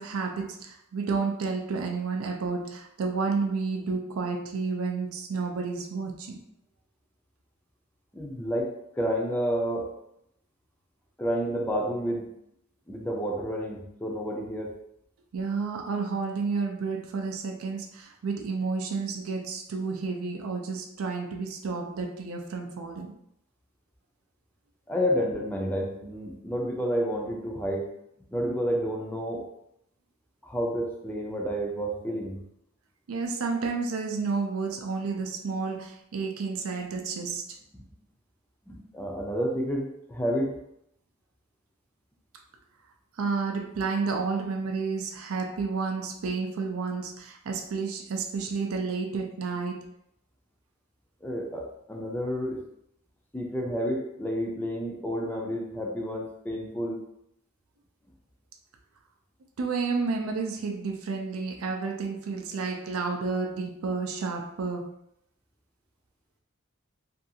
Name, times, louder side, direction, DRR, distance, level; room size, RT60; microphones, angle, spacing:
voice 1, 0.0-6.4 15.3-23.1 33.1-37.6 43.2-49.8 51.5-51.6 59.6-64.9, right 4 dB, 85° right, 4 dB, 0.4 m, -31 dB
voice 2, 8.1-9.9 11.2-12.3 12.9-14.8 24.9-27.9 28.3-29.5 30.4-32.4 38.7-40.6 51.2-52.6 53.3-57.0, equal, 10° left, 0 dB, 0.4 m, -30 dB
2.6 x 2.3 x 2.7 m, 0.77 s
head